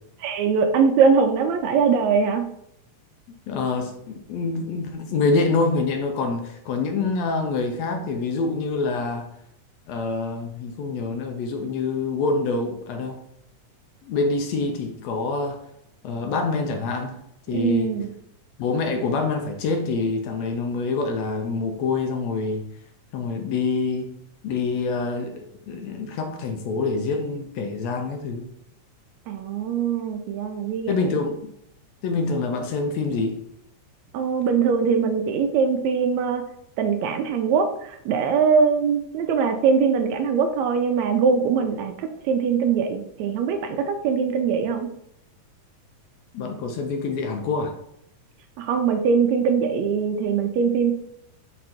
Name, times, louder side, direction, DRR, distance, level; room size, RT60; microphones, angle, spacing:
voice 1, 0.2-2.5 17.5-18.1 29.3-31.2 34.1-36.4 36.8-44.9 48.6-50.9, right 6 dB, 80° right, 6 dB, 1.7 m, -22 dB
voice 2, 3.5-9.3 9.9-13.2 14.0-15.6 16.0-17.2 17.5-17.9 18.6-22.7 23.1-24.2 24.4-28.5 30.9-31.4 32.0-33.4 46.3-47.8, left 3 dB, 75° left, 4 dB, 1.7 m, -26 dB
5.1 x 4.3 x 4.3 m, 0.76 s
omnidirectional pair, 3.4 m